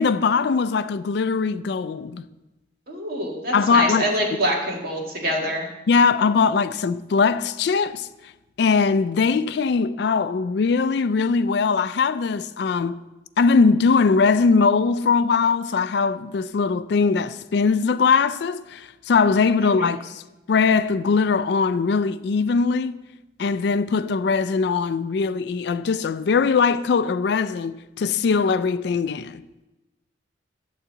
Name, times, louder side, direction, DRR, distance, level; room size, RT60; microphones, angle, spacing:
voice 1, 0.0-2.2 3.5-4.1 5.9-8.1 8.6-13.0 13.4-20.2 20.5-23.0 23.4-29.4, left 5 dB, 60° left, 0.3 m, -21 dB
voice 2, 2.9-5.7 19.6-19.9, right 1 dB, 50° right, 1.9 m, -26 dB
11.5 x 3.9 x 7.5 m
head